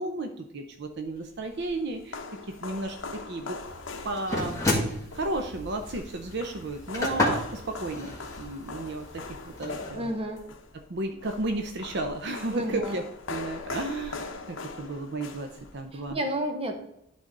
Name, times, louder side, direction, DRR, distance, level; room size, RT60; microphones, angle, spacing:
voice 1, 0.0-2.2 2.6-3.6 4.0-4.6 5.1-10.1 10.9-13.0 13.3-15.5 15.7-16.2, right 2 dB, 60° right, 5 dB, 0.7 m, -33 dB
sound 1, 1.1-16.1, left 3 dB, 70° left, 0.9 m, -42 dB
sound 2, 3.6-9.9, left 1 dB, 15° left, 2.1 m, -32 dB
voice 2, 9.9-10.4 12.5-13.0 16.1-16.7, right 1 dB, 30° right, 5 dB, 1.1 m, -30 dB
11.5 x 4.0 x 3.9 m, 0.80 s
head